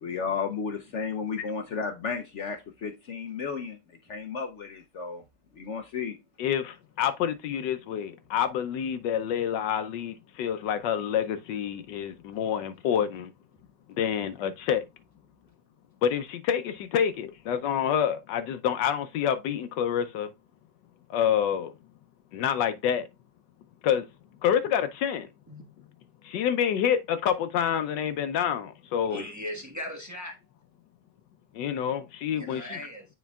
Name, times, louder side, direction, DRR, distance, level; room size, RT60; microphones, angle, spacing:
voice 1, 0.0-3.8 4.1-5.2 5.6-6.1, left 5 dB, 90° left, 0.6 m, -33 dB
voice 2, 6.4-13.3 14.0-14.8 16.0-20.3 21.1-21.7 22.3-23.1 23.8-24.1 24.4-25.3 26.2-29.2 31.5-32.8, left 9 dB, 75° left, 1.2 m, -27 dB
voice 3, 29.1-30.4 32.3-33.1, left 1 dB, 10° right, 0.9 m, -38 dB
9.3 x 4.5 x 2.3 m
omnidirectional pair, 2.1 m